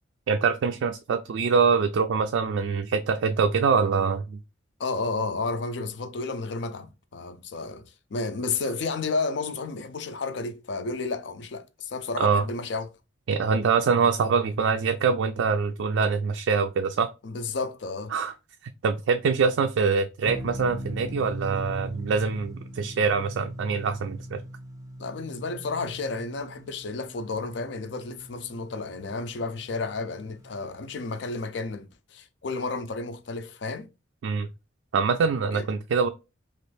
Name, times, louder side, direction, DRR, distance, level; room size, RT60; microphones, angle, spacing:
voice 1, 0.3-4.4 12.2-12.4 13.3-17.1 18.1-18.3 18.8-24.4 34.2-34.5 34.9-36.1, right 5 dB, 70° right, 0.3 m, -24 dB
voice 2, 4.8-12.9 17.2-18.1 25.0-33.9 35.5-35.7, left 3 dB, 60° left, 0.4 m, -32 dB
sound 1, 20.2-30.8, equal, 15° right, 0.5 m, -40 dB
3.1 x 2.5 x 3.1 m
head